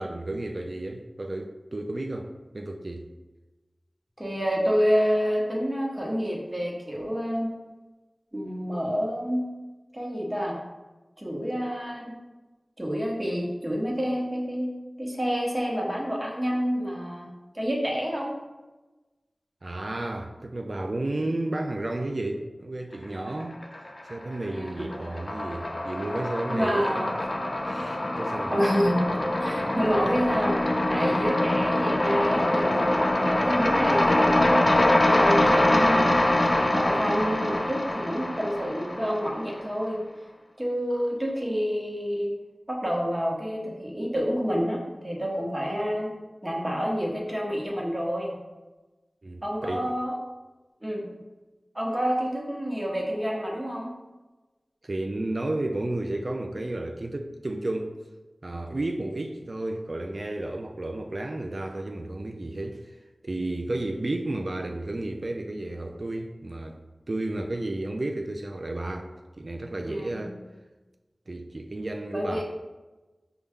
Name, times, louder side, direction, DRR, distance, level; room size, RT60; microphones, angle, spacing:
voice 1, 0.0-3.1 19.6-23.6 24.0-27.1 27.6-28.5 49.2-49.9 54.8-58.0 58.4-62.8 63.2-66.8 67.1-70.4 71.3-72.4, right 2 dB, 60° right, 4 dB, 0.3 m, -32 dB
voice 2, 4.2-7.5 8.3-9.5 9.9-10.6 11.2-12.0 12.8-17.3 17.5-18.3 21.2-21.3 24.5-24.9 26.5-27.2 28.5-29.0 29.4-30.6 30.9-36.1 36.7-40.0 40.6-42.3 42.7-46.1 46.4-48.4 49.4-50.1 50.8-51.0 51.7-53.9 69.9-70.3 72.1-72.4, equal, 25° right, -2 dB, 1.0 m, -28 dB
sound 1, 23.4-24.1 24.4-39.6, left 1 dB, 45° left, 0.5 m, -24 dB
5.2 x 2.3 x 3.5 m, 1.2 s
wide cardioid pair, 45°, 0 cm